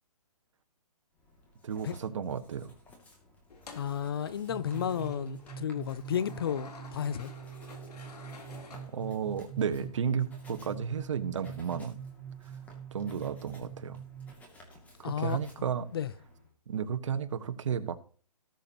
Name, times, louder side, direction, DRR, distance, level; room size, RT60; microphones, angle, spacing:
Writing, 1.1-16.5, left 1 dB, 5° left, 2.3 m, -58 dB
voice 1, 1.6-2.7 8.9-12.0 12.9-14.0 15.0-15.8 16.7-18.0, right 7 dB, 50° right, 1.4 m, -33 dB
sound 1, 3.5-9.5, left 4 dB, 80° left, 3.5 m, -50 dB
voice 2, 3.8-7.3 15.0-15.4 15.9-16.1, left 9 dB, 40° left, 0.6 m, -32 dB
sound 2, 4.5-14.3, right 7 dB, 10° right, 0.9 m, -44 dB
18.5 x 7.1 x 2.9 m
hypercardioid pair, 160°, 20 cm